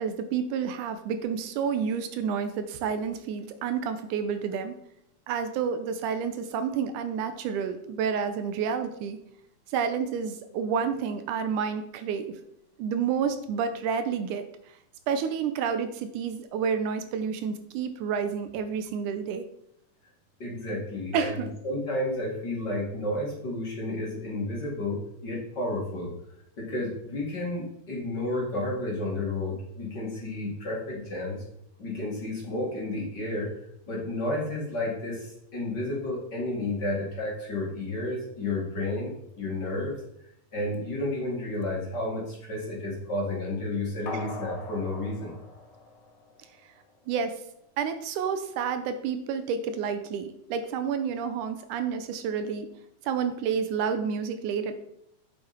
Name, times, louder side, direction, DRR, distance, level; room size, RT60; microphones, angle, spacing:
voice 1, 0.0-4.8 5.3-9.2 9.7-12.3 12.8-14.5 15.1-19.4 21.1-21.5 47.1-47.3 47.8-52.7 53.0-54.7, right 6 dB, 80° right, 9 dB, 2.2 m, -29 dB
voice 2, 20.4-26.1 26.6-31.4 31.8-33.5 33.9-39.9 40.5-45.3, left 1 dB, 35° left, -3 dB, 2.5 m, -31 dB
sound 1, 44.1-46.6 47.0-47.1, left 3 dB, 75° left, 3.3 m, -41 dB
8.2 x 7.6 x 4.3 m, 0.77 s
omnidirectional pair, 3.7 m